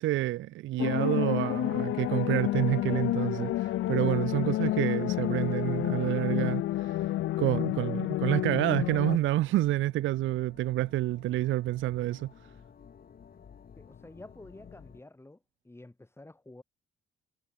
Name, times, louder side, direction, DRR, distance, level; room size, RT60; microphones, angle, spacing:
voice 1, 0.0-7.0 7.4-12.3, right 16 dB, 75° right, 0.6 m, -28 dB
sound 1, 0.8-9.2, left 14 dB, 85° left, 1.8 m, -29 dB
sound 2, 1.7-15.0, left 7 dB, 50° left, 5.3 m, -54 dB
voice 2, 13.8-15.4 15.6-16.6, left 2 dB, 10° left, 5.3 m, -50 dB
cardioid pair, 90°, 20 cm